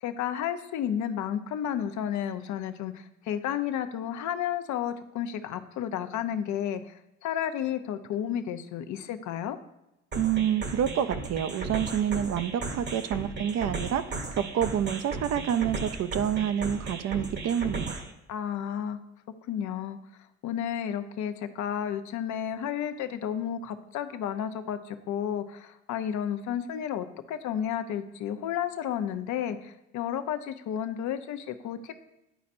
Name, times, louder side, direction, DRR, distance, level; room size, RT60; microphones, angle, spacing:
voice 1, 0.0-6.9 7.2-9.6 18.3-19.0 19.5-20.0 20.4-32.0, left 9 dB, 75° left, 9 dB, 0.6 m, -32 dB
sound 1, 10.1-18.1, right 3 dB, 35° right, 1.0 m, -36 dB
voice 2, 10.1-18.0, right 9 dB, 55° right, 11 dB, 0.5 m, -28 dB
11.0 x 4.2 x 2.6 m, 0.90 s
cardioid pair, 95°, 30 cm